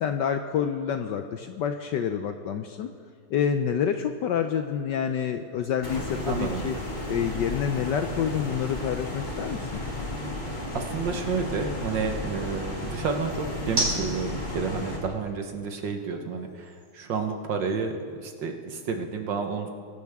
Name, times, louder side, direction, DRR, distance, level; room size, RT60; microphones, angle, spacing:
voice 1, 0.0-2.9 3.3-6.8 7.1-9.8, left 8 dB, 70° left, 7 dB, 1.1 m, -28 dB
sound 1, 4.0-18.2, right 1 dB, 20° right, 4.3 m, -40 dB
sound 2, 5.8-15.0, left 1 dB, 20° left, 2.2 m, -34 dB
voice 2, 6.2-6.6 10.7-19.7, right 5 dB, 60° right, 5 dB, 1.7 m, -30 dB
23.0 x 12.0 x 3.6 m, 2.2 s
omnidirectional pair, 2.4 m